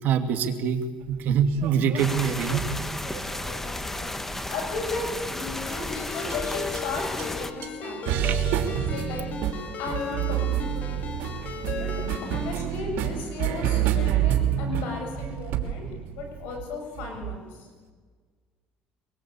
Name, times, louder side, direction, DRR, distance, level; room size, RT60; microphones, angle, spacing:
voice 1, 0.0-2.6 8.2-8.4, right 7 dB, 60° right, 5 dB, 2.7 m, -24 dB
sound 1, 1.1-3.7 4.6-5.1 6.3-6.4 6.8-6.9 7.2-7.3 7.6-17.4, right 11 dB, 75° right, 3.1 m, -29 dB
sound 2, 2.0-7.5, left 1 dB, 10° left, 1.4 m, -33 dB
voice 2, 3.4-4.2 4.5-8.4 8.9-9.3 9.8-11.1 11.8-11.9 12.2-15.9 16.1-17.7, left 3 dB, 80° left, 3 dB, 7.2 m, -35 dB
Ringtone, 5.7-12.5, left 6 dB, 50° left, 3.1 m, -37 dB
23.0 x 23.0 x 8.7 m, 1.5 s
cardioid pair, 120°, 3 cm